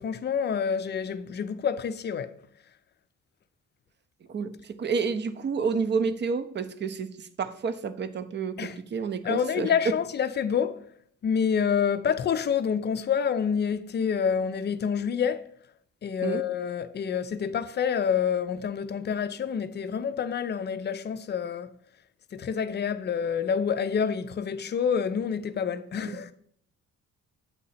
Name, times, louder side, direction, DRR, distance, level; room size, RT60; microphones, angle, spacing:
voice 1, 0.0-2.3 8.6-8.8 9.2-10.8 11.2-15.4 16.0-21.7 22.3-26.3, left 7 dB, 35° left, 0.4 m, -27 dB
voice 2, 4.3-9.7 16.2-16.4 26.0-26.2, right 5 dB, 35° right, 0.5 m, -30 dB
8.3 x 2.8 x 4.1 m
cardioid pair, 90°, 30 cm